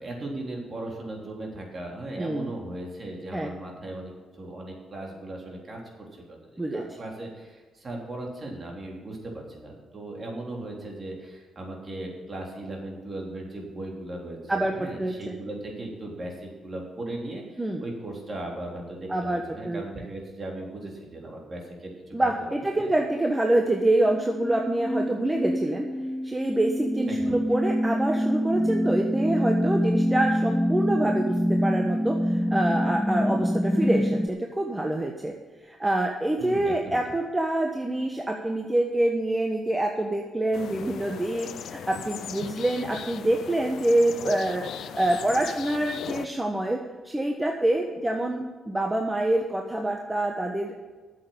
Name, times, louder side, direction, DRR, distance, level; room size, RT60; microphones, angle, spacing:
voice 1, 0.0-22.9 27.1-27.4 36.4-37.0, right 1 dB, 40° right, -1 dB, 3.6 m, -38 dB
voice 2, 2.2-2.5 3.3-3.5 6.6-6.8 14.5-15.3 17.6-17.8 19.1-19.8 22.1-25.9 26.2-35.3 35.6-46.8 47.0-50.8, right 1 dB, 20° right, 2 dB, 1.2 m, -26 dB
sound 1, 24.1-34.3, equal, ahead, 0.5 m, -26 dB
sound 2, 40.5-46.3, left 9 dB, 70° left, 0.5 m, -38 dB
8.6 x 7.7 x 8.7 m, 1.3 s
supercardioid pair, 50°, 0 cm